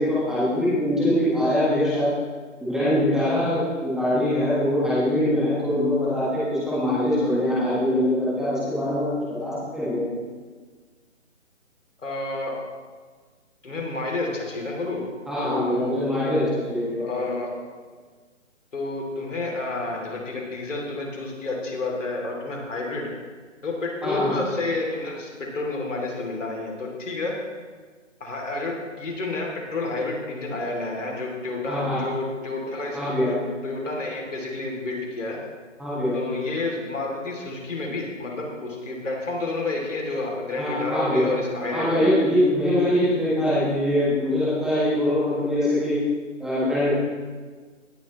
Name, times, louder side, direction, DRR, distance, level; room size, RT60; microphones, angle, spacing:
voice 1, 0.0-2.1 2.6-10.1 15.3-17.1 24.0-24.3 31.7-32.0 32.9-33.3 35.8-36.2 40.6-41.3 41.7-46.0 46.4-46.9, left 1 dB, ahead, -11 dB, 1.4 m, -23 dB
voice 2, 12.0-12.5 13.6-15.0 15.4-15.9 17.0-17.5 18.7-23.1 23.6-27.3 28.2-33.3 33.6-35.4 36.1-42.1, left 2 dB, 70° left, 0 dB, 3.0 m, -30 dB
17.5 x 6.8 x 3.1 m, 1.5 s
figure-of-eight pair, 155°, 39 cm